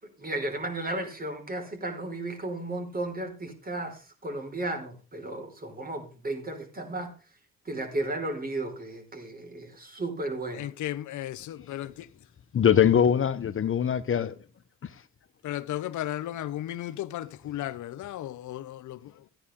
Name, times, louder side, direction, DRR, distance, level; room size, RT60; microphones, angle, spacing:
voice 1, 0.0-7.1 7.6-10.7, right 2 dB, 30° right, 5.0 m, -34 dB
voice 2, 10.6-11.9 15.4-19.0, left 13 dB, 75° left, 0.9 m, -34 dB
voice 3, 12.5-14.3 14.8-15.0, left 8 dB, 45° left, 0.9 m, -22 dB
15.0 x 9.7 x 3.7 m
cardioid pair, 90°, 30 cm